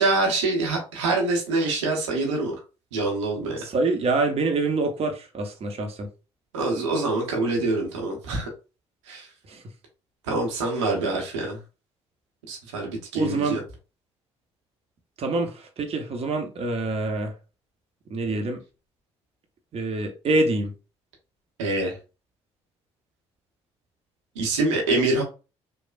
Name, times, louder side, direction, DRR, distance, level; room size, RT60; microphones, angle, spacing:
voice 1, 0.0-2.6 2.9-3.6 6.5-8.5 9.1-9.3 10.3-11.6 12.5-13.6 21.6-22.0 24.4-25.2, right 2 dB, 85° right, 0.8 m, -25 dB
voice 2, 3.6-6.1 9.5-9.6 13.1-13.6 15.2-17.3 18.1-18.6 19.7-20.7, right 3 dB, 40° right, 0.7 m, -26 dB
3.1 x 2.0 x 2.4 m
hypercardioid pair, 50°, 15 cm